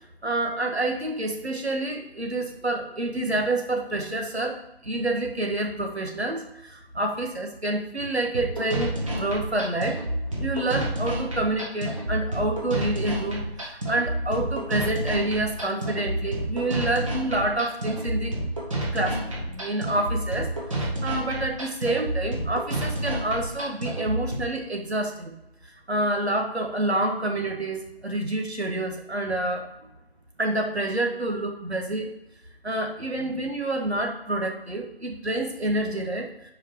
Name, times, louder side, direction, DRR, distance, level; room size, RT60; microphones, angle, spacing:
voice 1, 0.2-4.6 4.8-10.0 10.4-18.3 18.9-20.5 20.8-25.3 25.9-29.7 30.4-32.1 32.6-36.3, right 2 dB, 90° right, 2 dB, 1.5 m, -28 dB
sound 1, 8.3-24.3, right 1 dB, 30° right, 1.4 m, -29 dB
5.2 x 5.1 x 4.8 m, 0.84 s
figure-of-eight pair, 165°, 32 cm